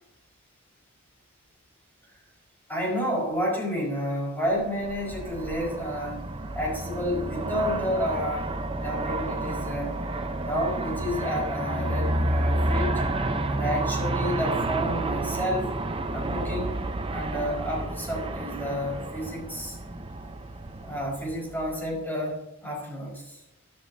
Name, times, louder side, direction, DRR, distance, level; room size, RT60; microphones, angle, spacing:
voice 1, 2.7-6.2 6.5-10.0 10.4-12.9 13.5-15.7 16.1-16.8 17.1-19.8 20.8-23.4, equal, 10° left, -3 dB, 4.7 m, -30 dB
Aircraft, 4.6-21.9, right 2 dB, 25° right, 0.7 m, -30 dB
13.0 x 12.0 x 2.7 m, 0.88 s
head